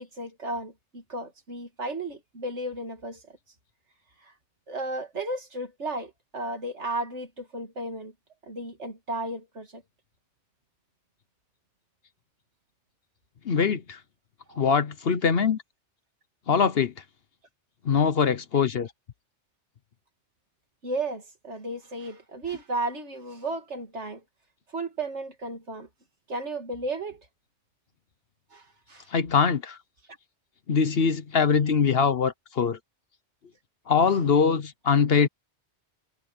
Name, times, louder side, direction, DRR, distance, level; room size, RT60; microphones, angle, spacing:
voice 1, 0.0-3.4 4.2-4.3 4.7-8.1 8.4-9.8 14.5-14.6 20.8-24.2 24.7-25.9 26.3-27.2 28.5-29.1, right 2 dB, 90° right, 2.9 m, -34 dB
voice 2, 13.4-14.0 14.6-15.6 16.5-16.9 17.8-18.9 29.1-29.8 30.7-32.8 33.9-35.3, left 6 dB, 60° left, 1.1 m, -22 dB
omnidirectional pair, 1.1 m